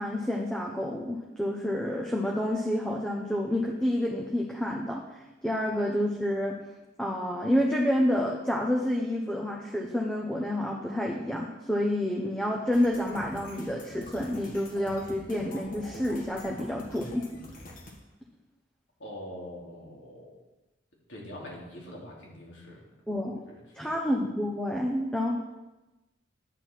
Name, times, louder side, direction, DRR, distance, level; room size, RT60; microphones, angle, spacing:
voice 1, 0.0-6.6 7.0-17.3 23.1-23.4 23.8-25.4, left 1 dB, 5° left, -1 dB, 0.9 m, -29 dB
sound 1, 12.7-17.9, left 1 dB, 50° left, 1.8 m, -45 dB
voice 2, 19.0-20.3 21.1-22.8 23.5-23.9, left 1 dB, 80° left, -3 dB, 3.0 m, -43 dB
10.0 x 7.9 x 4.5 m, 1.0 s
head